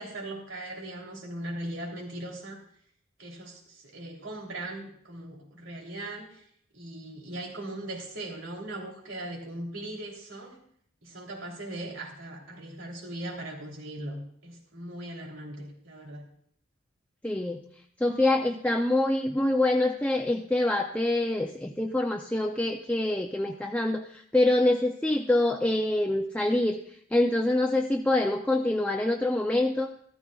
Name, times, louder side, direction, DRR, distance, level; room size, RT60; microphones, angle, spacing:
voice 1, 0.0-2.6 3.2-6.4 6.7-10.6 11.0-16.3, right 1 dB, 90° right, -1 dB, 3.2 m, -39 dB
voice 2, 17.2-17.6 18.0-24.1 24.3-26.8 27.1-29.9, left 1 dB, 5° left, 2 dB, 0.4 m, -25 dB
14.0 x 13.5 x 2.3 m, 0.65 s
head